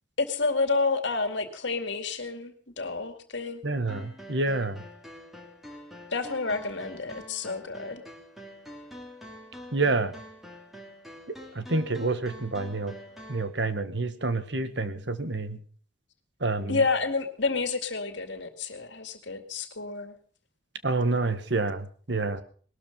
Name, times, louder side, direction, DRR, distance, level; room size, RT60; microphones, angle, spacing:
voice 1, 0.2-3.6 6.1-8.0 16.7-20.2, left 4 dB, 60° left, 8 dB, 2.3 m, -29 dB
voice 2, 3.6-4.8 9.7-10.1 11.3-12.9 13.3-15.6 16.4-16.8 20.8-22.4, right 3 dB, 60° right, 11 dB, 1.5 m, -28 dB
sound 1, 3.9-13.5, equal, ahead, 3.0 m, -46 dB
20.0 x 13.0 x 5.3 m, 0.43 s
head